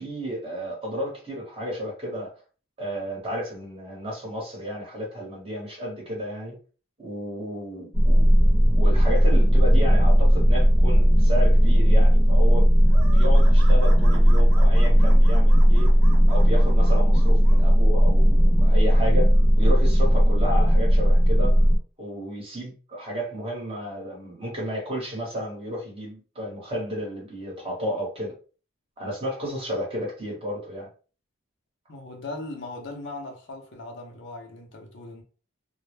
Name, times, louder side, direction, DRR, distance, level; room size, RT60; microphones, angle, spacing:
voice 1, 0.0-2.3 2.8-6.6 7.0-8.3 8.7-12.7 13.1-15.9 16.3-21.6 22.0-28.3 29.0-30.9, equal, 25° right, 1.0 m, -32 dB
sound 1, 7.9-21.8, equal, 15° left, 0.5 m, -16 dB
sound 2, 12.9-17.6, right 4 dB, 85° right, 0.6 m, -42 dB
voice 2, 31.9-35.2, left 2 dB, 60° left, 0.6 m, -38 dB
2.2 x 2.0 x 3.1 m
head